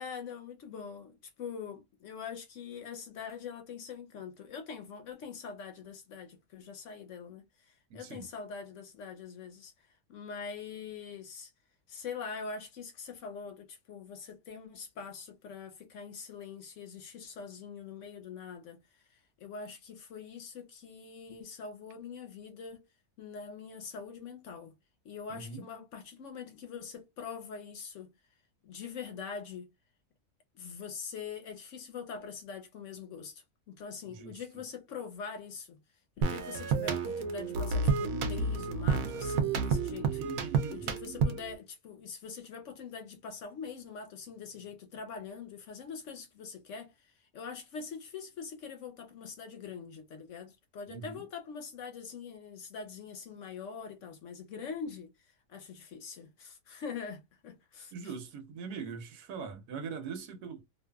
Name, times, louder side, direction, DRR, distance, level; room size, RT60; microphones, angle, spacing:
voice 1, 0.0-11.5 11.9-22.8 23.2-24.7 25.0-28.1 28.6-29.7 30.5-35.8 36.2-40.2 40.7-58.1, left 6 dB, 65° left, 0.8 m, -43 dB
voice 2, 7.9-8.3 25.3-25.6 34.1-34.6 40.0-40.9 50.9-51.2 57.9-60.6, right 5 dB, 90° right, 1.2 m, -42 dB
sound 1, 36.2-41.6, right 5 dB, 70° right, 1.0 m, -30 dB
2.8 x 2.4 x 2.2 m
omnidirectional pair, 1.6 m